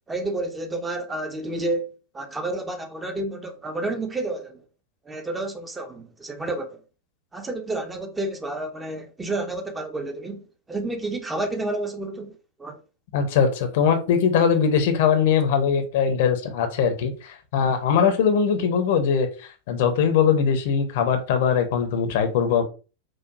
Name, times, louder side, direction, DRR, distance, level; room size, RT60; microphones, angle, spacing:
voice 1, 0.1-1.9 2.1-4.6 5.0-6.8 7.3-12.8, right 2 dB, 10° right, 0.5 m, -30 dB
voice 2, 13.1-22.6, left 7 dB, 50° left, 0.6 m, -21 dB
4.6 x 2.2 x 2.5 m
figure-of-eight pair, 90°, 0 cm